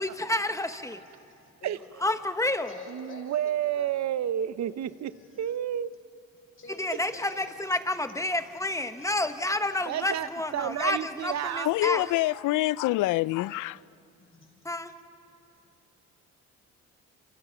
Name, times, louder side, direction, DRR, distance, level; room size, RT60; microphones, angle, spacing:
voice 1, 0.0-1.0 2.0-2.7 6.7-12.0 14.6-14.9, left 2 dB, 10° left, 1.2 m, -29 dB
voice 2, 1.0-1.8 2.6-3.9 6.6-7.7 8.9-9.3 14.2-14.6, left 4 dB, 45° left, 6.4 m, -48 dB
voice 3, 1.6-2.1 2.9-6.0 9.9-12.1, right 10 dB, 60° right, 0.8 m, -31 dB
voice 4, 11.6-13.8, left 18 dB, 85° left, 0.5 m, -26 dB
27.0 x 27.0 x 5.8 m
cardioid pair, 90°, 30 cm